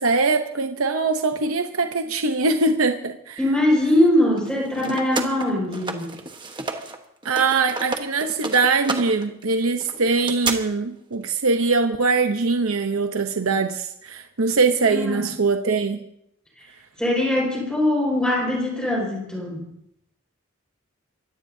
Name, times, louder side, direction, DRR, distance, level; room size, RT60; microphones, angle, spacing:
voice 1, 0.0-3.4 7.2-16.0, right 4 dB, 80° right, 6 dB, 0.9 m, -22 dB
voice 2, 3.4-6.1 14.9-15.3 17.0-19.7, left 1 dB, 5° left, -2 dB, 5.4 m, -21 dB
sound 1, 4.4-7.0 7.2-10.5, right 3 dB, 20° right, 1.2 m, -31 dB
24.0 x 17.5 x 2.8 m, 0.78 s
head